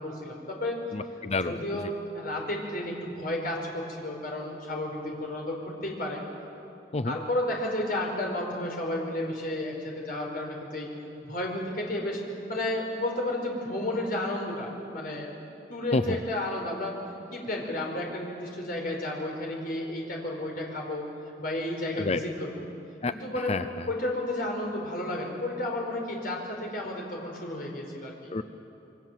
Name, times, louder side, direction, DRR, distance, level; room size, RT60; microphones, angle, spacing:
voice 1, 0.0-0.8 1.4-1.9 2.1-6.2 7.0-10.9 11.2-12.2 12.5-15.3 15.7-17.0 17.3-21.0 21.4-22.5 23.1-23.5 23.9-28.1, left 1 dB, 55° left, 0 dB, 4.9 m, -32 dB
voice 2, 0.9-1.9 6.9-7.2 15.9-16.2 22.0-22.2 23.0-23.9 28.3-28.4, left 3 dB, 40° left, 11 dB, 0.6 m, -30 dB
28.0 x 23.0 x 7.6 m, 2.8 s
head